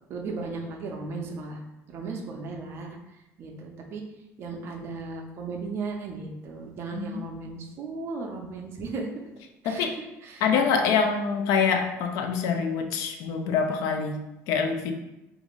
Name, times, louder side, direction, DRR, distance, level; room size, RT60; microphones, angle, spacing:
voice 1, 0.1-1.6 1.9-2.9 3.4-4.0 4.4-9.1 9.6-9.8 10.2-10.5, right 4 dB, 40° right, 2 dB, 0.4 m, -36 dB
voice 2, 6.9-7.3 9.6-10.0 10.4-14.9, left 6 dB, 70° left, 6 dB, 0.3 m, -25 dB
2.5 x 2.4 x 3.0 m, 0.95 s
cardioid pair, 160°, 6 cm